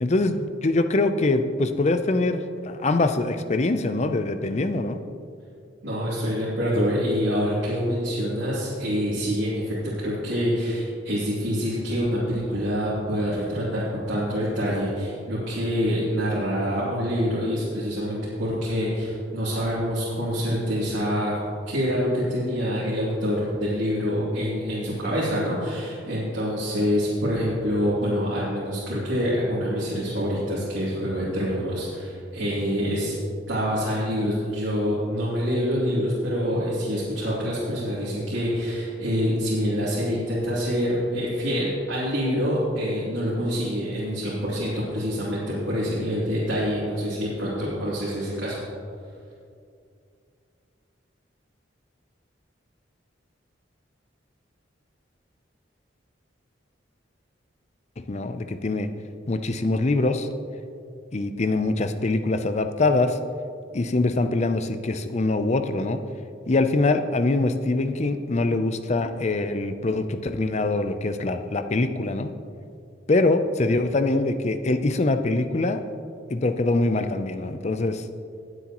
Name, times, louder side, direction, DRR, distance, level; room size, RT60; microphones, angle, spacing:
voice 1, 0.0-5.0 58.1-58.9 59.3-60.3 61.1-63.2 63.7-66.0 66.5-72.3 73.1-75.8 76.3-78.0, left 2 dB, 35° left, 9 dB, 0.5 m, -23 dB
voice 2, 5.8-21.4 21.7-33.1 33.5-48.6, equal, 90° right, -9 dB, 2.7 m, -26 dB
19.0 x 7.9 x 3.0 m, 2.4 s
head